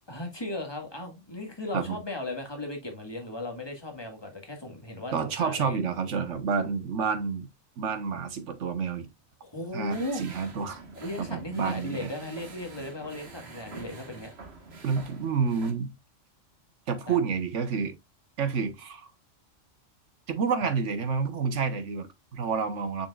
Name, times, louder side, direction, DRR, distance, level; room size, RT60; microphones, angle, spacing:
voice 1, 0.1-5.8 9.4-10.2 11.0-14.3 17.1-17.2 20.6-20.7, left 2 dB, 20° left, 1.8 m, -36 dB
voice 2, 5.1-7.5 7.8-9.1 9.7-10.8 11.2-12.1 14.8-15.9 16.9-17.9 18.4-19.1 20.3-23.1, right 5 dB, 75° right, 1.4 m, -29 dB
sound 1, 9.9-15.7, right 3 dB, 60° right, 1.7 m, -46 dB
6.9 x 6.1 x 2.3 m
omnidirectional pair, 1.3 m